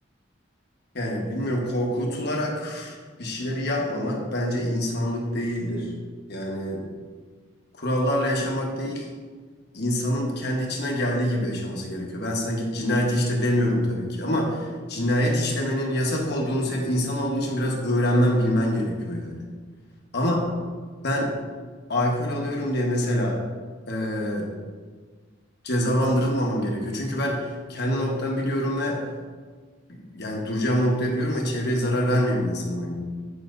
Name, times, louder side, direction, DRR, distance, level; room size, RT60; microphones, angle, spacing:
voice 1, 0.9-5.9 6.3-6.8 7.8-9.1 9.7-19.4 20.1-20.4 21.0-21.4 21.9-23.4 23.9-24.5 25.6-29.0 29.9-32.9, equal, 55° left, -1 dB, 1.3 m, -25 dB
9.8 x 5.8 x 2.6 m, 1.5 s
head